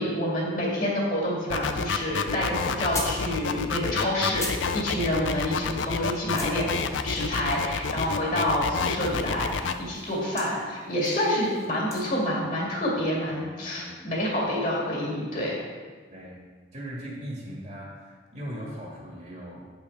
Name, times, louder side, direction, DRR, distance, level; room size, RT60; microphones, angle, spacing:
voice 1, 0.0-15.6, left 1 dB, 45° left, -4 dB, 2.1 m, -28 dB
sound 1, 1.5-9.7, left 5 dB, 85° left, 0.5 m, -29 dB
sound 2, 2.8-5.5 5.8-5.9 6.1-12.0, left 2 dB, 15° left, 1.0 m, -42 dB
voice 2, 5.0-5.6 13.3-14.0 16.1-16.4 16.7-19.7, equal, 40° right, -3 dB, 1.7 m, -40 dB
8.3 x 5.7 x 4.6 m, 1.5 s
head